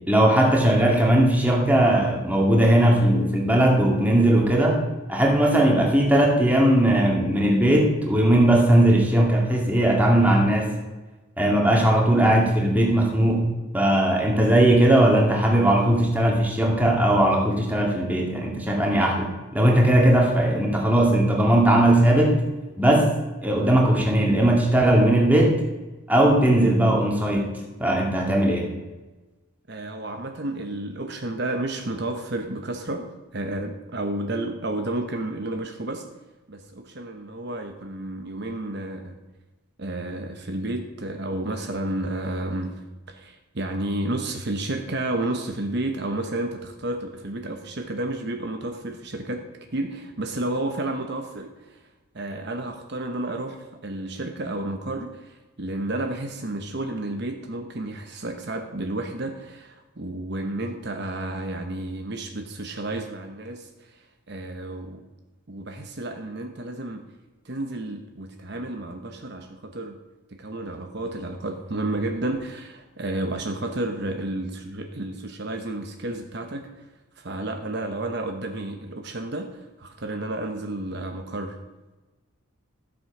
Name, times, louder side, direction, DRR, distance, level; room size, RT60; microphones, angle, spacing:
voice 1, 0.1-4.8 5.1-10.8 11.4-22.4 22.8-23.1 23.4-25.6 26.1-28.7, right 1 dB, 5° right, -1 dB, 2.2 m, -19 dB
voice 2, 29.7-36.0 36.5-39.2 39.8-42.8 43.1-51.8 52.1-65.0 65.5-67.0 67.4-70.0 70.3-76.9 77.2-81.6, right 2 dB, 50° right, 4 dB, 1.0 m, -31 dB
14.0 x 8.1 x 6.0 m, 1.2 s
head